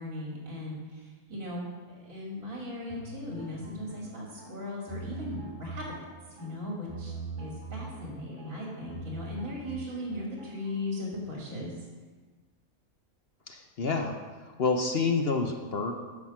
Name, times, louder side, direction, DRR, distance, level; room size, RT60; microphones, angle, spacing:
voice 1, 0.0-6.0 6.3-11.7, left 1 dB, 65° right, -3 dB, 2.7 m, -38 dB
sound 1, 2.9-10.8, right 3 dB, 15° right, 1.6 m, -43 dB
voice 2, 13.5-14.1 14.6-15.9, left 4 dB, 50° left, 4 dB, 0.9 m, -28 dB
9.8 x 6.4 x 6.0 m, 1.4 s
omnidirectional pair, 1.5 m